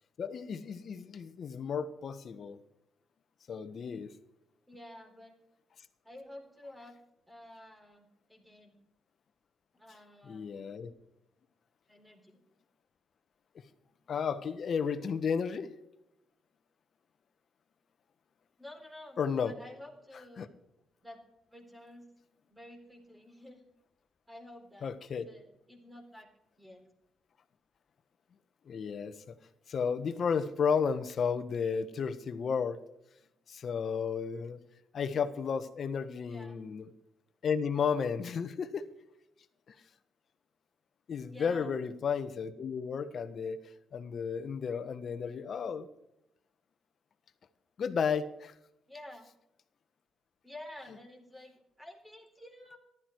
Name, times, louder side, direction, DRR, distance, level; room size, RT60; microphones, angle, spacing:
voice 1, 0.2-2.6 3.5-4.1 10.2-10.9 14.1-15.7 19.2-19.5 20.4-20.5 24.8-25.3 28.7-29.3 29.7-32.8 33.5-34.6 34.9-36.9 37.4-38.8 39.7-39.8 41.1-43.6 43.9-45.9 47.8-48.5, left 6 dB, 55° left, 11 dB, 1.3 m, -33 dB
voice 2, 4.7-5.4 6.0-7.0 7.3-8.8 9.7-10.9 11.9-12.4 18.6-20.5 21.0-21.2 21.5-22.1 22.4-23.6 24.3-24.9 25.2-26.3 26.6-26.9 36.3-36.6 41.3-41.7 48.9-49.2 50.4-52.8, left 1 dB, 5° right, 3 dB, 4.1 m, -51 dB
14.5 x 12.5 x 4.7 m, 0.85 s
cardioid pair, 90°, 0 cm